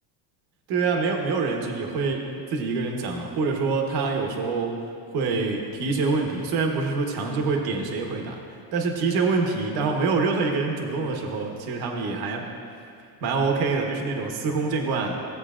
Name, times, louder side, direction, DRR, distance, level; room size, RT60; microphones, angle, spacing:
voice 1, 0.7-4.8 5.1-8.4 8.7-12.5 13.2-15.2, right 4 dB, 50° right, 2 dB, 1.3 m, -25 dB
16.0 x 7.9 x 2.5 m, 2.4 s
cardioid pair, 140°, 46 cm